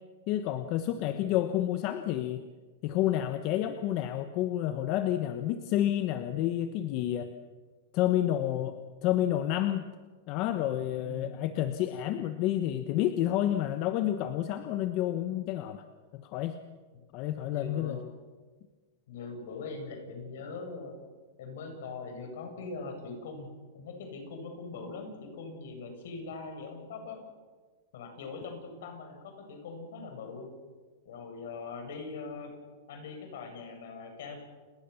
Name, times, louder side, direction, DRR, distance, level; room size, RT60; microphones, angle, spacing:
voice 1, 0.3-2.4 2.8-7.3 7.9-9.9 10.3-15.8 16.1-16.6 17.1-18.0, left 12 dB, 35° left, 9 dB, 1.1 m, -29 dB
voice 2, 11.0-11.4 16.9-17.0 17.4-18.1 19.1-20.9 21.4-23.5 23.7-27.2 27.9-30.5 31.0-32.5 32.9-34.4, left 4 dB, 65° left, 4 dB, 7.9 m, -41 dB
29.5 x 20.0 x 7.1 m, 1.4 s
supercardioid pair, 165°, 0 cm